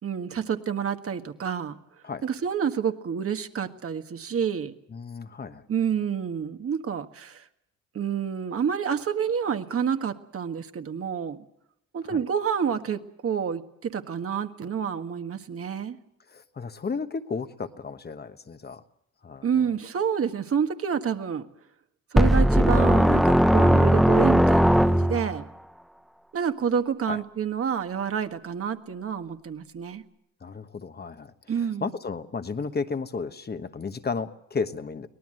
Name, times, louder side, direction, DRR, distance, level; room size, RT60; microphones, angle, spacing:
voice 1, 0.0-1.8 2.2-4.7 5.7-7.4 7.9-11.4 11.9-16.0 19.4-21.5 22.1-25.4 26.3-30.0 31.5-31.9, right 7 dB, 50° right, 7 dB, 1.7 m, -28 dB
voice 2, 4.9-5.6 12.0-12.2 16.3-18.8 19.2-19.5 27.1-27.2 30.4-31.3 31.8-35.1, left 4 dB, 35° left, 9 dB, 1.3 m, -33 dB
sound 1, 22.2-25.4, equal, ahead, 0.9 m, -18 dB
23.5 x 18.5 x 7.7 m, 0.76 s
cardioid pair, 90°, 30 cm